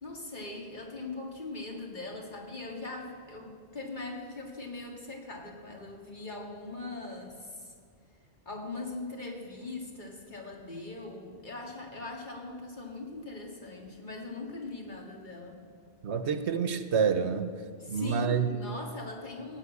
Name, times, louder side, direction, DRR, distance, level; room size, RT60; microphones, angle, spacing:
voice 1, 0.0-7.7 8.5-15.6 17.8-19.6, left 2 dB, 45° left, 0 dB, 2.3 m, -41 dB
voice 2, 16.0-17.5 17.9-18.5, right 6 dB, 80° right, 10 dB, 1.2 m, -28 dB
15.5 x 9.4 x 8.4 m, 2.1 s
omnidirectional pair, 1.1 m